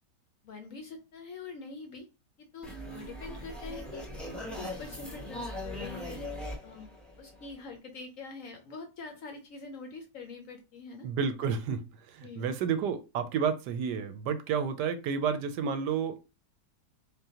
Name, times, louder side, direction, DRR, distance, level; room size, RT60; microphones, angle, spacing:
voice 1, 0.4-2.1 2.4-4.0 4.4-6.2 6.6-6.9 7.2-11.1 12.2-12.5, left 4 dB, 65° left, 0.9 m, -45 dB
sound 1, 2.6-7.8, left 1 dB, ahead, 0.6 m, -40 dB
voice 2, 11.0-16.2, right 6 dB, 75° right, 1.2 m, -31 dB
3.6 x 3.6 x 2.8 m
omnidirectional pair, 1.9 m